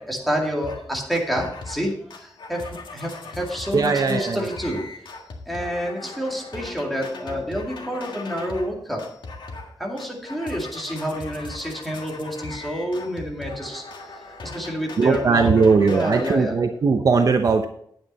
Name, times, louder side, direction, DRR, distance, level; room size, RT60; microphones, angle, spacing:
voice 1, 0.0-5.0 5.5-9.1 9.8-13.8 14.2-16.6, equal, ahead, -1 dB, 2.3 m, -28 dB
sound 1, 0.6-0.8 1.1-8.7 9.0-9.7 10.0-16.4, left 3 dB, 75° left, 1.8 m, -38 dB
voice 2, 3.7-4.4 15.0-17.7, right 4 dB, 50° right, 6 dB, 0.7 m, -19 dB
9.6 x 8.9 x 4.2 m, 0.67 s
wide cardioid pair, 170°, 8 cm